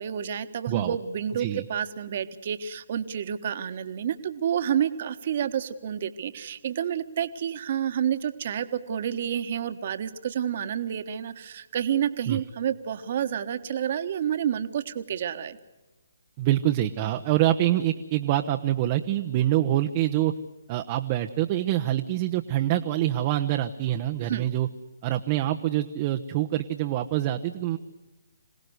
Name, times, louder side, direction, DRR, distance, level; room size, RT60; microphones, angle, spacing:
voice 1, 0.0-15.6 24.2-24.4, right 9 dB, 45° right, 10 dB, 1.4 m, -29 dB
voice 2, 0.7-1.0 1.4-1.6 12.3-12.4 16.4-20.3 20.7-24.7 25.0-27.8, right 13 dB, 30° right, 5 dB, 0.9 m, -25 dB
26.5 x 17.5 x 8.1 m, 1.1 s
figure-of-eight pair, 140°, 0 cm